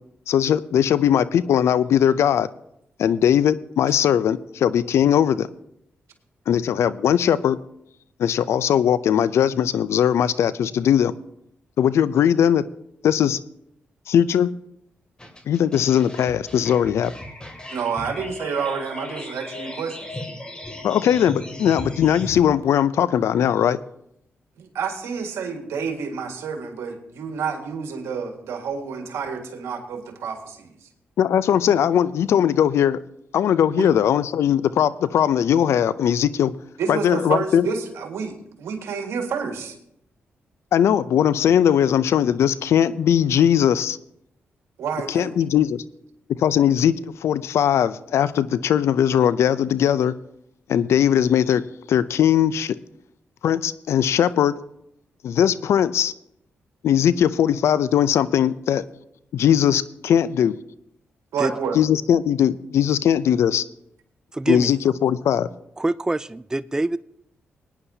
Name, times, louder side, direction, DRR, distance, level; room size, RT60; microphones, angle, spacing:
voice 1, 0.3-2.5 3.0-5.5 6.5-7.6 8.2-11.1 11.8-12.6 13.0-13.4 14.1-14.5 15.5-17.1 20.8-23.8 31.2-33.0 33.3-36.5 36.9-37.7 40.7-44.0 45.1-45.8 46.4-50.1 50.7-51.6 51.9-52.8 53.4-54.5 55.2-56.1 56.8-58.8 59.3-60.5 61.7-63.6 64.5-65.5, left 9 dB, 80° left, 0.5 m, -19 dB
sound 1, 15.2-22.4, left 1 dB, 20° left, 2.5 m, -36 dB
voice 2, 17.7-20.1 24.6-30.9 33.7-33.9 36.8-39.8 44.8-45.3 61.3-61.8, right 6 dB, 85° right, 1.8 m, -29 dB
voice 3, 64.3-64.7 65.8-67.0, right 2 dB, 15° right, 0.3 m, -24 dB
20.0 x 9.7 x 2.8 m
cardioid pair, 60°, 5 cm